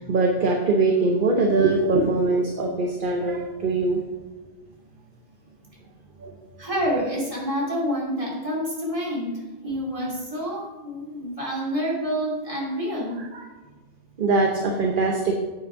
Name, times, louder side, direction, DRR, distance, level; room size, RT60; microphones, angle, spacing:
voice 1, 0.0-4.0 6.2-6.4 13.3-13.4 14.2-15.3, right 3 dB, 50° right, 1 dB, 1.0 m, -22 dB
voice 2, 6.6-13.2, equal, 30° right, -4 dB, 2.6 m, -28 dB
8.5 x 6.1 x 4.9 m, 1.2 s
omnidirectional pair, 1.2 m